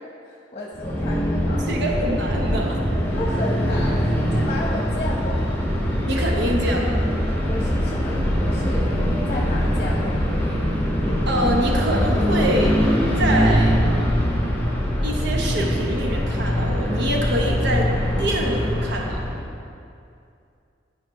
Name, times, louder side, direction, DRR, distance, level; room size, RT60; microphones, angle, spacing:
voice 1, 0.2-1.7 3.1-5.6 7.4-8.8 9.3-10.3, left 1 dB, 40° left, -4 dB, 1.0 m, -33 dB
sound 1, 0.7-19.5, equal, 10° left, 1.3 m, -22 dB
voice 2, 1.7-2.8 6.1-7.0 11.3-12.8 13.2-13.8 15.0-17.9 18.2-19.2, right 1 dB, 65° right, 0 dB, 1.0 m, -25 dB
11.5 x 5.1 x 3.1 m, 2.5 s
head